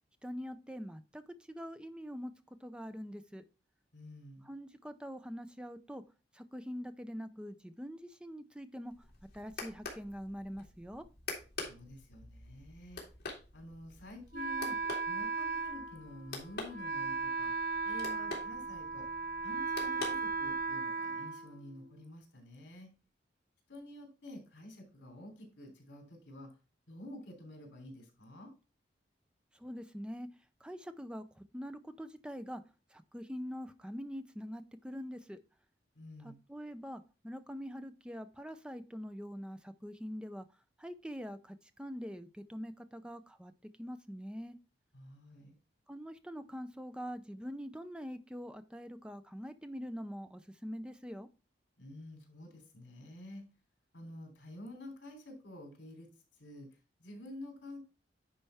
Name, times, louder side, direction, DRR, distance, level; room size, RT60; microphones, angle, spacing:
voice 1, 0.2-3.4 4.4-6.0 6.3-9.1 9.3-11.0 29.5-30.3 30.6-32.6 32.9-35.4 36.2-40.5 40.8-43.5 43.8-44.6 45.9-51.3, equal, 5° right, 10 dB, 0.5 m, -44 dB
voice 2, 3.9-4.5 11.6-13.0 13.5-14.8 15.1-17.5 17.8-19.1 19.4-22.9 23.7-26.5 26.9-28.5 35.9-36.4 44.9-45.6 51.8-53.4 53.9-56.7 57.0-57.8, left 1 dB, 70° left, 2 dB, 3.2 m, -49 dB
sound 1, 8.9-20.8, left 3 dB, 55° left, 2.4 m, -47 dB
Wind instrument woodwind instrument, 14.3-22.1, right 4 dB, 45° right, 0.6 m, -37 dB
9.8 x 4.4 x 3.4 m, 0.33 s
head